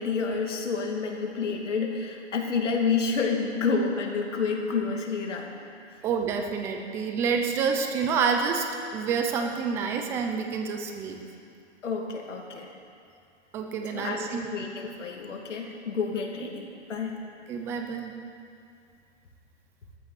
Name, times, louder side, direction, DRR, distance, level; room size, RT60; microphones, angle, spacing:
voice 1, 0.0-5.6 11.8-12.7 13.9-17.2, left 5 dB, 90° left, 1 dB, 2.6 m, -29 dB
voice 2, 6.0-8.6 8.9-11.2 13.5-14.5 17.5-18.1, right 6 dB, 10° right, 4 dB, 0.3 m, -28 dB
18.0 x 13.5 x 4.1 m, 2.5 s
hypercardioid pair, 145°, 36 cm